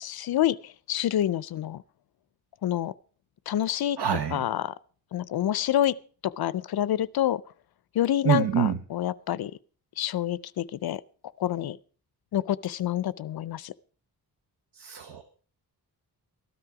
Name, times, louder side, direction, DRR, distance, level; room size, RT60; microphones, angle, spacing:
voice 1, 0.0-1.8 2.6-2.9 3.5-4.0 4.3-4.7 5.1-6.0 6.2-7.4 7.9-9.5 10.0-11.0 11.4-11.8 12.3-13.7, left 11 dB, 70° left, 0.5 m, -27 dB
voice 2, 4.0-4.5 8.2-8.8 14.7-15.2, right 8 dB, 90° right, 1.1 m, -26 dB
13.5 x 13.0 x 4.8 m
wide cardioid pair, 175°, 39 cm